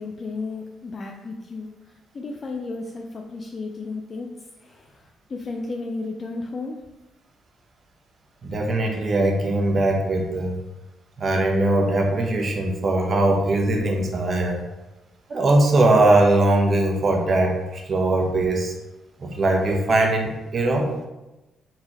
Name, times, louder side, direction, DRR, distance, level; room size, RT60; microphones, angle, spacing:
voice 1, 0.0-4.3 4.6-6.8, left 3 dB, 40° left, 2 dB, 0.4 m, -33 dB
voice 2, 8.4-10.5 11.2-14.6 15.3-18.7 19.2-20.8, right 2 dB, 45° right, 1 dB, 0.8 m, -20 dB
4.3 x 3.4 x 3.0 m, 1.0 s
cardioid pair, 90°, 0 cm